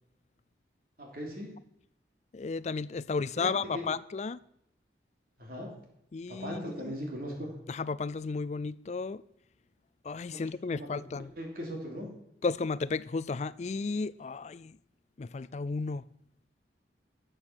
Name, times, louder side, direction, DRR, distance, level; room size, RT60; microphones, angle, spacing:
voice 1, 1.0-1.5 3.3-3.8 5.4-5.7 6.3-7.5 10.3-10.4 10.7-10.9 11.4-12.1, equal, 55° right, 3.2 m, -39 dB
voice 2, 2.3-4.4 6.1-6.9 7.7-9.2 10.0-11.3 12.4-14.8 15.2-16.1, left 4 dB, 40° left, 0.4 m, -33 dB
13.0 x 7.7 x 6.3 m
head